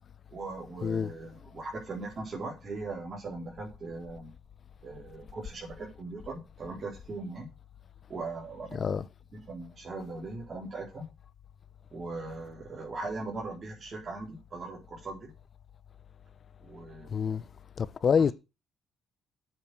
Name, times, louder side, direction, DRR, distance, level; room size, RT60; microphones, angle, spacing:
voice 1, 0.3-4.3 4.8-7.5 8.1-8.9 9.3-11.0 11.9-15.3 16.6-17.4 18.1-18.3, right 3 dB, 45° right, 4.0 m, -40 dB
voice 2, 0.8-1.1 8.8-9.0 17.1-17.4 17.8-18.3, left 6 dB, 50° left, 0.8 m, -26 dB
8.7 x 6.9 x 7.7 m
cardioid pair, 90°, 0 cm